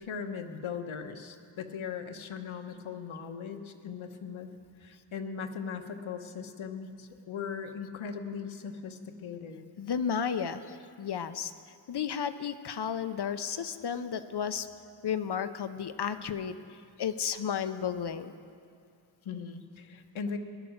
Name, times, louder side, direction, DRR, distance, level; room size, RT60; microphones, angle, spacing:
voice 1, 0.0-4.5 4.8-9.6 19.2-20.4, left 6 dB, 75° left, 5 dB, 1.2 m, -39 dB
voice 2, 9.8-11.5 11.9-14.7 15.0-18.3, left 7 dB, 55° left, 11 dB, 0.7 m, -33 dB
17.5 x 11.5 x 6.5 m, 2.3 s
wide cardioid pair, 150°, 48 cm